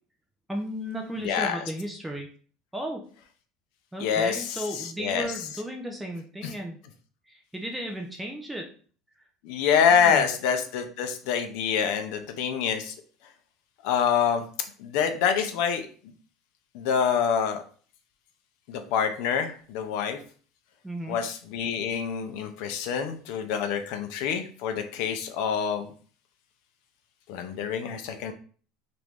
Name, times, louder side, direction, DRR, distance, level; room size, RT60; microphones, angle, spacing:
voice 1, 0.5-2.3 2.7-3.0 3.9-6.8 7.3-8.7 9.9-10.2 20.8-21.2, equal, 5° right, 2 dB, 0.3 m, -34 dB
voice 2, 1.2-1.6 4.0-5.3 6.4-6.5 9.4-12.9 13.8-14.4 14.8-15.9 16.7-17.6 18.7-20.2 21.1-25.9 27.3-28.3, left 7 dB, 60° left, 7 dB, 0.5 m, -26 dB
3.0 x 2.5 x 3.4 m, 0.43 s
cardioid pair, 175°, 0 cm